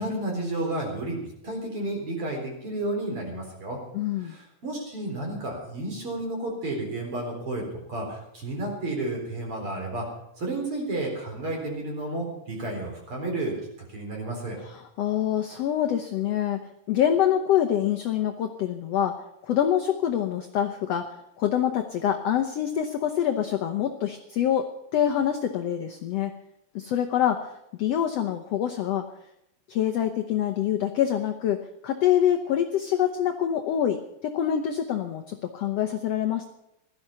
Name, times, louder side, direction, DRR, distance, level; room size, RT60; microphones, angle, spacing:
voice 1, 0.0-3.8 4.2-7.6 7.9-10.0 10.4-13.5 13.9-14.6, right 2 dB, 40° right, 1 dB, 4.8 m, -31 dB
voice 2, 3.9-4.3 14.6-16.6 16.9-21.1 21.4-26.3 26.7-29.1 29.7-36.5, left 10 dB, 75° left, 6 dB, 1.5 m, -26 dB
16.5 x 13.0 x 5.6 m, 0.84 s
omnidirectional pair, 3.9 m